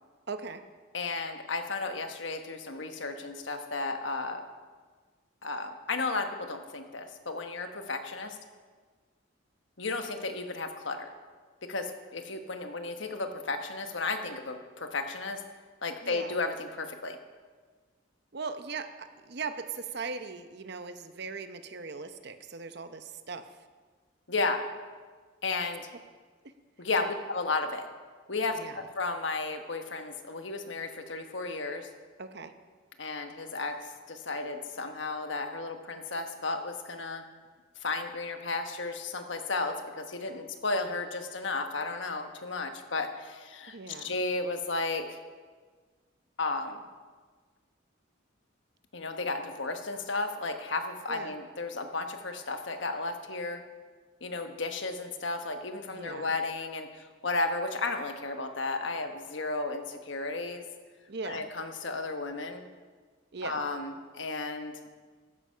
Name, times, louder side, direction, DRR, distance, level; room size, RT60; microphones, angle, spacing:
voice 1, 0.3-0.6 16.0-16.4 18.3-23.4 27.0-27.1 28.5-28.8 32.2-32.5 43.7-44.1 51.1-51.3 55.9-56.3 61.1-61.4 63.3-63.6, right 4 dB, 55° right, 9 dB, 0.8 m, -39 dB
voice 2, 0.9-4.4 5.4-8.4 9.8-11.1 11.6-15.4 15.8-17.2 24.3-24.6 25.4-25.9 26.8-27.9 28.3-31.9 33.0-37.2 37.8-45.2 46.4-46.8 48.9-53.6 54.2-60.6 61.2-62.7 63.4-64.7, left 3 dB, 70° left, 6 dB, 1.2 m, -33 dB
13.5 x 9.8 x 5.6 m, 1.5 s
head